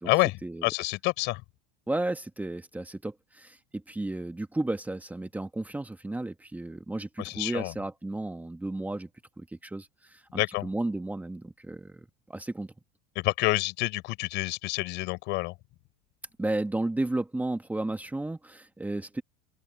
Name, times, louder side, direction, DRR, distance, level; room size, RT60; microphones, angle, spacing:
voice 1, 0.0-1.4 7.2-7.7 10.3-10.7 13.2-15.5, left 22 dB, 60° left, 7.0 m, -28 dB
voice 2, 1.9-9.1 9.4-12.7 16.4-19.2, right 2 dB, 5° right, 2.0 m, -33 dB
open air
supercardioid pair, 100°, 21 cm